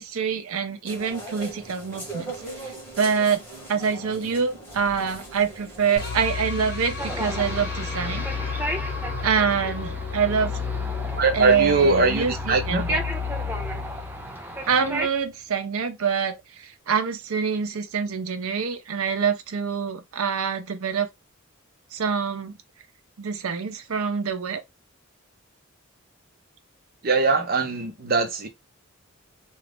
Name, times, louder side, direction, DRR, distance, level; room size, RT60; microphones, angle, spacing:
voice 1, 0.0-2.4 2.6-3.4 3.7-8.2 9.2-10.6 11.3-13.1 14.7-21.1 21.9-22.5 23.2-24.6, right 6 dB, 90° right, 0.6 m, -25 dB
sound 1, 0.8-6.3, right 2 dB, 10° left, 1.2 m, -39 dB
sound 2, 6.0-15.1, left 5 dB, 50° left, 1.0 m, -32 dB
sound 3, 7.0-15.1, right 1 dB, 10° right, 0.4 m, -34 dB
voice 2, 11.1-12.8 27.0-28.5, right 3 dB, 45° right, 0.7 m, -21 dB
2.4 x 2.4 x 3.3 m
head